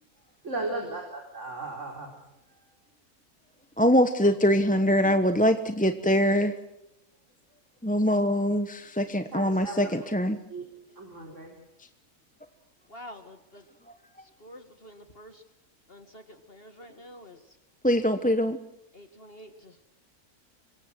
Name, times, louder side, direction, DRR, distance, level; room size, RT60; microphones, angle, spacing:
voice 1, 0.4-2.1 9.3-9.9 10.5-10.6 11.0-11.6, right 2 dB, 50° right, 2 dB, 4.4 m, -36 dB
voice 2, 3.8-6.5 7.8-10.4 17.8-18.6, equal, 5° left, 9 dB, 1.0 m, -23 dB
voice 3, 12.9-13.7 14.2-15.4 15.9-17.6 18.9-19.9, equal, 40° left, 7 dB, 2.2 m, -48 dB
27.0 x 24.0 x 6.3 m, 0.83 s
omnidirectional pair, 1.6 m